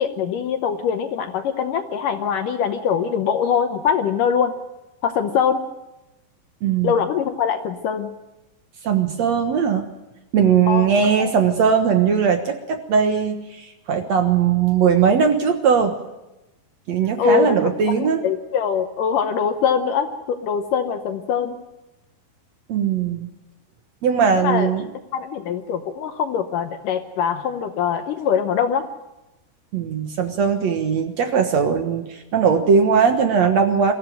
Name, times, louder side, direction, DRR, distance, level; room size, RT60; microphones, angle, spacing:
voice 1, 0.0-4.5 5.0-5.6 6.8-8.1 10.7-10.9 11.2-11.3 17.2-17.7 18.0-21.6 24.3-24.7 25.1-28.9, left 7 dB, 75° left, 7 dB, 2.0 m, -22 dB
voice 2, 6.6-6.9 8.8-9.9 10.3-16.0 16.9-18.2 22.7-23.3 24.0-24.9 29.7-33.9, right 6 dB, 65° right, 5 dB, 1.7 m, -19 dB
22.5 x 15.0 x 9.2 m, 1.0 s
omnidirectional pair, 5.0 m